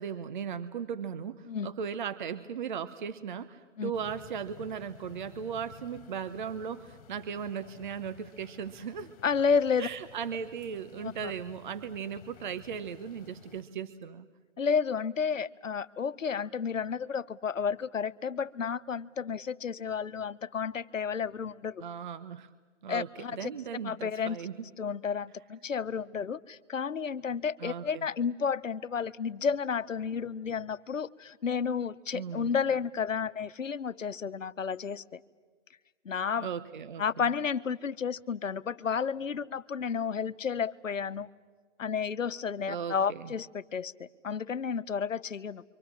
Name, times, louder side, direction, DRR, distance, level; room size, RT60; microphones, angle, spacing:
voice 1, 0.0-9.1 9.8-14.3 21.8-22.5 22.8-24.5 27.6-28.1 32.1-32.5 36.4-37.2 42.7-43.3, right 7 dB, 40° right, 13 dB, 1.0 m, -37 dB
sound 1, 3.9-13.6, left 9 dB, 30° left, 4.0 m, -54 dB
voice 2, 9.2-9.9 11.0-11.3 14.6-21.8 22.9-23.5 23.8-24.4 24.8-35.2 36.0-36.5 37.0-41.3 41.8-45.6, left 6 dB, 85° left, 15 dB, 1.1 m, -31 dB
29.5 x 25.0 x 7.4 m, 1.5 s
hypercardioid pair, 155°, 38 cm